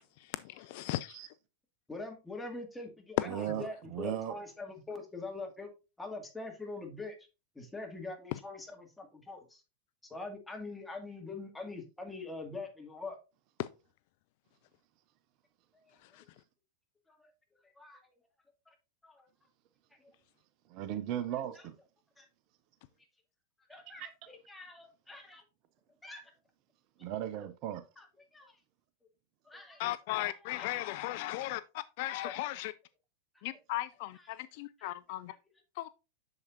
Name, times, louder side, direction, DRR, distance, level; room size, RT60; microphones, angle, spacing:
voice 1, 0.3-1.2 29.8-32.7 33.4-35.3 35.8-35.9, left 16 dB, 50° left, 0.3 m, -37 dB
voice 2, 1.9-5.7 6.0-7.2 7.6-9.6 10.0-13.2 15.7-15.9 17.1-17.3 17.8-18.1 18.7-18.8 19.0-19.3 20.0-20.1 22.2-22.3 23.7-25.4 26.0-26.2 28.0-28.1 28.3-28.6 29.5-29.9 30.2-31.1 32.2-32.3 33.3-33.6 34.1-34.5 34.8-34.9, left 3 dB, 5° left, 2.0 m, -44 dB
voice 3, 3.2-4.4 20.7-21.8 24.0-24.3 27.0-27.8, right 11 dB, 40° right, 0.6 m, -37 dB
7.8 x 7.0 x 2.6 m
figure-of-eight pair, 90°, 0 cm